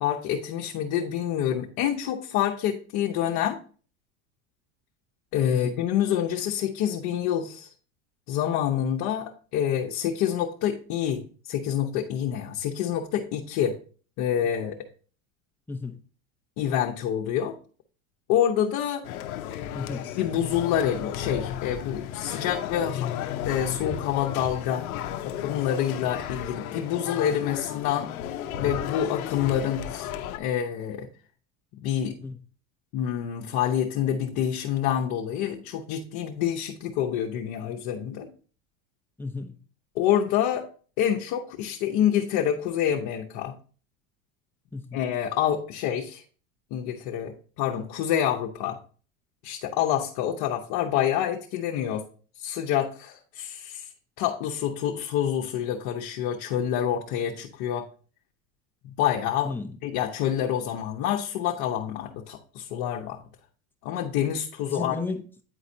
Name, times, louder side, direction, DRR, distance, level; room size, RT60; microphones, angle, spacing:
voice 1, 0.0-3.6 5.3-7.7 8.3-13.7 14.2-14.9 16.6-17.5 18.3-19.0 20.2-23.1 23.5-24.8 25.2-28.1 28.6-30.1 30.4-31.1 31.8-32.1 32.9-38.3 40.0-40.7 41.0-43.5 44.9-46.2 46.7-48.8 49.4-52.0 52.4-53.9 54.2-57.8 59.0-59.5 59.8-63.2 63.8-65.0, left 10 dB, 55° left, 0.9 m, -27 dB
sound 1, 19.0-30.4, left 10 dB, 90° left, 0.7 m, -34 dB
voice 2, 19.7-20.1 32.0-32.4 39.2-39.6 44.7-45.0 59.4-59.8 64.7-65.3, left 3 dB, 5° left, 0.6 m, -34 dB
9.1 x 4.1 x 2.7 m
supercardioid pair, 115°, 42 cm